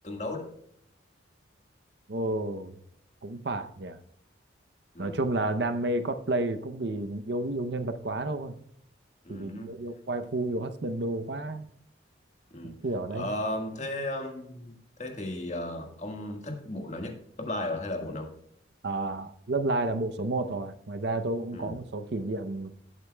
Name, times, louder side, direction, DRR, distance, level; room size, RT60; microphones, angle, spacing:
voice 1, 0.0-0.5 4.9-5.2 9.2-9.8 12.5-12.8 13.1-18.3 21.5-21.8, left 1 dB, 35° left, 3 dB, 1.6 m, -35 dB
voice 2, 2.1-2.7 3.2-4.0 5.0-8.6 9.3-11.7 12.6-13.3 18.8-22.7, right 2 dB, 60° right, 9 dB, 0.7 m, -31 dB
18.5 x 8.2 x 2.3 m, 0.70 s
head